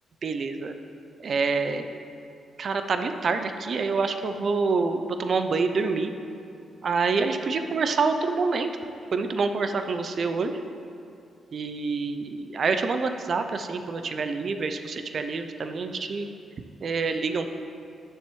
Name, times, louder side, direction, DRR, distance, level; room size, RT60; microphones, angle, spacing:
voice 1, 0.2-0.7 1.2-1.8 2.6-6.1 6.8-8.7 9.1-10.5 11.5-16.3 16.8-17.5, right 4 dB, 55° right, 8 dB, 0.5 m, -27 dB
9.3 x 6.7 x 3.1 m, 2.6 s
supercardioid pair, 50°, 0 cm